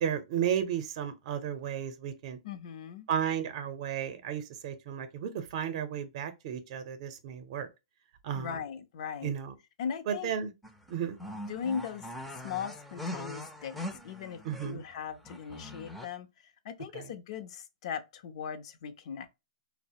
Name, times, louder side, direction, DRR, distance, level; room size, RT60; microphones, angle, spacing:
voice 1, 0.0-2.4 3.1-7.7 8.2-8.6 9.2-9.5 10.1-10.5 10.9-11.2 14.4-14.8 16.9-17.1, right 8 dB, 50° right, 0.6 m, -33 dB
voice 2, 2.4-3.1 8.3-9.3 9.8-10.3 11.4-19.3, left 7 dB, 55° left, 0.6 m, -39 dB
sound 1, 10.6-14.9 15.2-16.1, left 1 dB, ahead, 0.5 m, -42 dB
4.0 x 2.0 x 2.7 m
hypercardioid pair, 130°, 4 cm